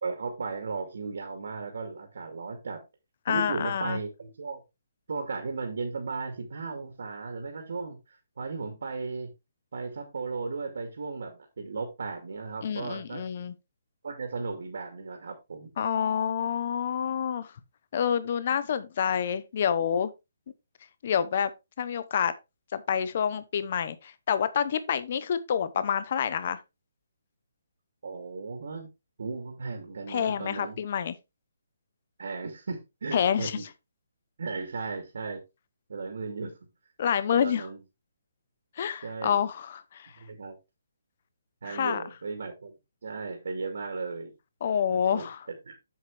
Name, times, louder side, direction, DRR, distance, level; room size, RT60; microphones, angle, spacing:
voice 1, 0.0-2.8 3.3-4.6 5.1-9.3 9.7-13.2 14.0-15.7 28.0-28.9 29.2-30.8 32.2-33.6 34.4-35.4 35.9-36.6 37.3-37.8 39.0-39.4 40.2-40.5 41.6-42.7 43.0-44.3 44.9-45.3 45.7-45.8, right 4 dB, 55° right, 2.5 m, -36 dB
voice 2, 3.3-4.0 12.6-13.5 15.8-17.5 17.9-20.1 21.0-21.5 21.8-22.3 22.7-26.6 30.1-31.1 33.1-33.6 37.0-37.7 38.8-40.1 41.6-42.0 44.6-45.4, left 8 dB, 30° left, 0.8 m, -28 dB
8.0 x 7.7 x 3.4 m
hypercardioid pair, 180°, 0 cm